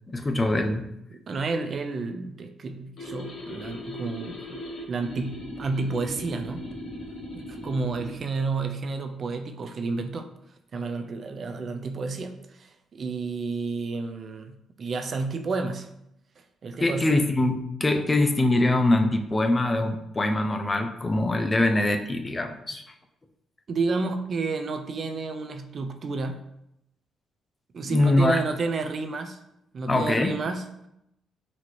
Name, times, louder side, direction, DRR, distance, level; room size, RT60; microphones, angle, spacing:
voice 1, 0.1-0.9 16.8-22.8 27.9-28.4 29.9-30.3, left 2 dB, 25° left, 6 dB, 0.4 m, -23 dB
voice 2, 1.1-4.6 4.9-6.7 7.3-10.3 10.7-15.9 16.6-17.3 23.7-26.4 27.7-29.4 29.7-30.7, right 3 dB, 50° right, 6 dB, 0.3 m, -31 dB
sound 1, 3.0-8.2, left 1 dB, 65° left, 1.2 m, -38 dB
4.1 x 2.8 x 3.1 m, 0.82 s
cardioid pair, 90°, 0 cm